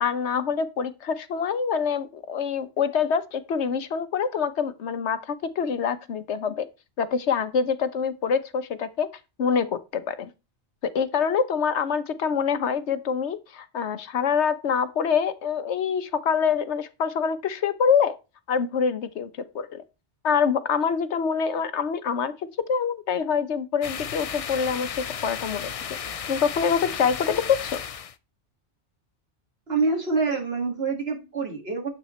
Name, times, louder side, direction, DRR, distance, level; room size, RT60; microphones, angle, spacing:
voice 1, 0.0-6.7 7.0-9.1 9.4-10.3 10.9-18.2 18.5-19.3 19.5-19.8 20.2-22.3 22.7-25.0 25.2-25.7 26.3-27.8, left 6 dB, 75° left, 1.1 m, -25 dB
sound 1, 23.8-28.1, left 7 dB, 50° left, 0.4 m, -34 dB
voice 2, 29.7-31.9, right 4 dB, 60° right, 2.4 m, -26 dB
9.3 x 8.1 x 3.1 m
omnidirectional pair, 1.2 m